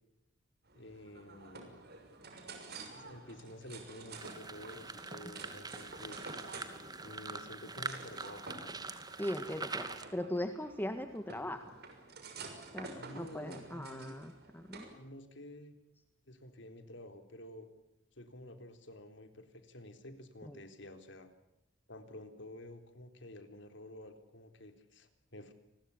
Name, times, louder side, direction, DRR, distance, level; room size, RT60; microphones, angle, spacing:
voice 1, 0.7-1.8 2.9-6.2 7.0-8.5 13.0-14.2 14.8-15.8 16.3-17.7 18.2-21.3 21.9-25.5, left 1 dB, 70° left, 8 dB, 3.9 m, -50 dB
sound 1, 0.7-14.9, right 3 dB, 55° right, 6.4 m, -50 dB
sound 2, 4.2-10.1, right 3 dB, 20° right, 2.5 m, -44 dB
voice 2, 9.2-11.7 12.7-14.9 20.4-20.6, left 1 dB, 10° left, 8 dB, 1.5 m, -39 dB
30.0 x 21.5 x 7.3 m, 0.93 s
head